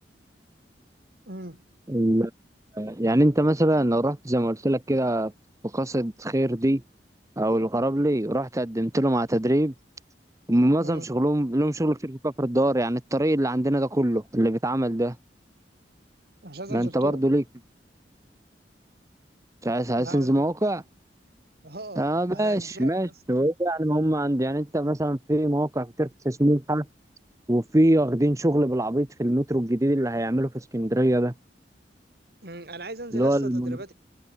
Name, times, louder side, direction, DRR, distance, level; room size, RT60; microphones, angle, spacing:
voice 1, 1.3-1.6 10.8-11.1 16.4-17.2 20.0-20.4 21.6-23.2 32.4-33.9, right 2 dB, 60° right, 3.9 m, -39 dB
voice 2, 1.9-2.3 2.7-5.3 5.7-6.8 7.4-9.7 10.5-15.2 16.7-17.4 19.6-20.8 22.0-26.8 27.5-31.3 33.1-33.8, right 1 dB, 20° right, 1.0 m, -23 dB
head